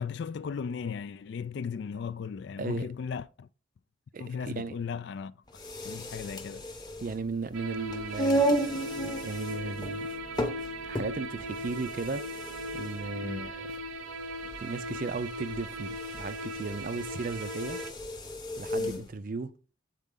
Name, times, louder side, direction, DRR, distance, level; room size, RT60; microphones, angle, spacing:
voice 1, 0.0-3.5 4.2-5.3 5.8-6.7 13.2-13.5 18.8-19.1, left 6 dB, 55° left, 0.3 m, -36 dB
voice 2, 4.1-4.8 7.0-10.1 10.8-12.3 12.7-13.7 14.6-17.8 18.6-19.5, right 3 dB, 40° right, 0.4 m, -36 dB
sound 1, 5.5-19.1, right 1 dB, 20° left, 0.8 m, -34 dB
sound 2, 7.5-17.9, equal, 85° right, 0.9 m, -38 dB
sound 3, 8.3-13.3, left 1 dB, 75° left, 0.8 m, -52 dB
8.1 x 4.2 x 3.7 m
head